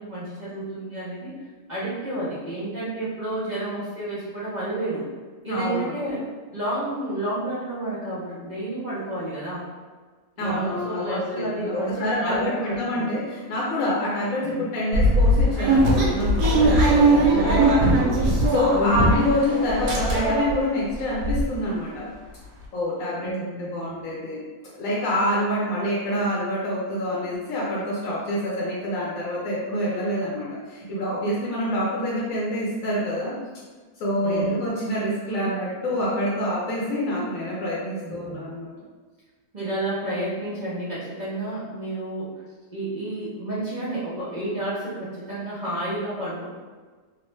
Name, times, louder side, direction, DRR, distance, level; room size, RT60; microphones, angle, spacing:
voice 1, 0.0-1.3 1.7-5.1 5.4-6.2 6.5-9.7 10.4-13.2 14.4-14.6 23.1-24.0 34.2-34.6 38.0-38.4 39.5-42.4 42.7-46.5, right 1 dB, 55° right, -9 dB, 0.5 m, -31 dB
voice 2, 5.5-6.1 10.4-22.0 22.7-24.4 24.8-33.3 34.0-38.7, left 1 dB, 65° left, -7 dB, 1.0 m, -27 dB
sound 1, 14.9-19.4 19.7-20.5 20.9-21.0 21.2-21.4, right 1 dB, 85° right, 1.2 m, -19 dB
sound 2, 15.4-16.0 16.4-18.7 19.1-20.7, right 1 dB, 15° left, 0.7 m, -31 dB
3.0 x 2.0 x 3.1 m, 1.4 s
omnidirectional pair, 1.7 m